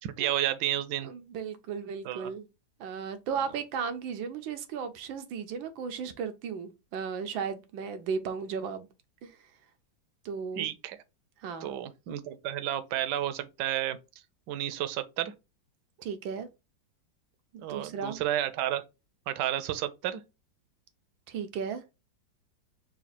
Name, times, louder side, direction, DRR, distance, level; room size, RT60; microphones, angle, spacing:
voice 1, 0.0-1.1 2.0-2.3 10.5-11.0 11.6-14.0 14.5-15.3 17.6-18.8 19.3-20.2, right 12 dB, 70° right, 1.1 m, -31 dB
voice 2, 1.0-2.5 2.8-8.9 9.2-9.4 10.2-10.7 11.4-11.7 16.0-16.5 17.5-18.2 21.3-21.8, right 6 dB, 90° right, 1.4 m, -35 dB
4.1 x 2.4 x 4.1 m
omnidirectional pair, 2.1 m